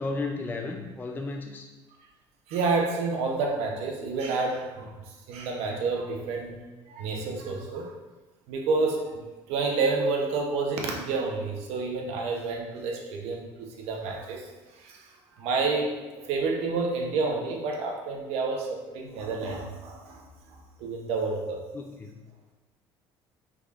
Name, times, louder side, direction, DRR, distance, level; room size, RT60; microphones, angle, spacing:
voice 1, 0.0-1.7 21.7-22.2, left 3 dB, 20° left, 2 dB, 0.4 m, -34 dB
voice 2, 2.5-4.9 5.3-6.5 6.9-7.9 8.5-9.2 9.5-14.4 14.8-15.0 15.4-16.0 16.2-18.7 18.9-20.2 20.8-21.6, right 3 dB, 75° right, 1 dB, 0.9 m, -29 dB
4.9 x 3.5 x 2.4 m, 1.2 s
supercardioid pair, 100°, 11 cm